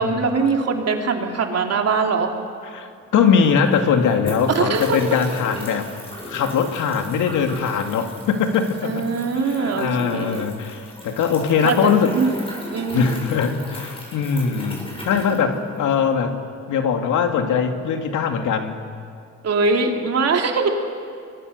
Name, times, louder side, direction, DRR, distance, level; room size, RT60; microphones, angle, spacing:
voice 1, 0.0-2.3 4.5-5.0 8.8-10.5 11.6-12.3 12.7-13.2 15.5-15.6 19.4-20.7, right 4 dB, 55° right, 2 dB, 3.2 m, -22 dB
voice 2, 2.6-5.9 6.3-9.0 9.3-12.1 12.9-16.4 16.7-18.8, left 6 dB, 80° left, 4 dB, 2.5 m, -21 dB
sound 1, 3.0-3.1 3.3-16.1, equal, 20° left, 7.9 m, -38 dB
29.0 x 23.0 x 6.7 m, 2.3 s
cardioid pair, 90°, 30 cm